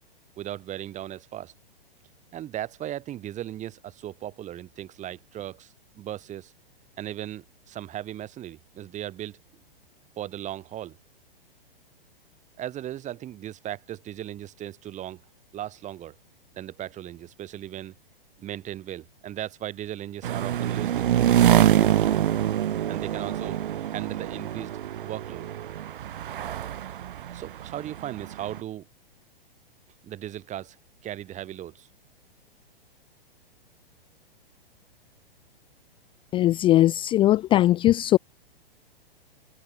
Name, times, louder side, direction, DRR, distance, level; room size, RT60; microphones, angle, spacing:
voice 1, 0.4-1.5 2.3-6.5 7.0-9.4 10.2-11.0 12.6-15.2 15.5-16.1 16.5-17.9 18.4-21.9 22.9-23.6 23.9-24.7 25.0-25.5 27.3-28.8 30.0-30.8 31.0-31.9, right 12 dB, 25° right, 5.0 m, -37 dB
sound 1, 20.2-28.6, right 11 dB, 60° right, 1.2 m, -25 dB
voice 2, 36.3-38.2, left 14 dB, 15° left, 0.6 m, -20 dB
figure-of-eight pair, 115°, 30 cm